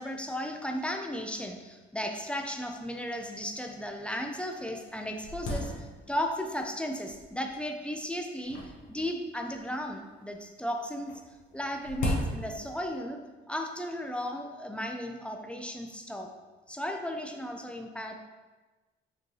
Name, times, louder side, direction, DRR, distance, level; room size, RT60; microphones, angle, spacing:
voice 1, 0.0-11.2 11.5-13.2 13.5-16.3 16.7-18.2, equal, 5° left, 3 dB, 0.4 m, -35 dB
sound 1, 2.3-2.4 2.6-2.7 3.4-3.5 4.1-4.2 4.6-6.3 7.1-7.5 8.4-9.8 11.0-12.9, left 1 dB, 85° left, 0.8 m, -36 dB
4.3 x 2.7 x 3.2 m, 1.2 s
cardioid pair, 90°, 20 cm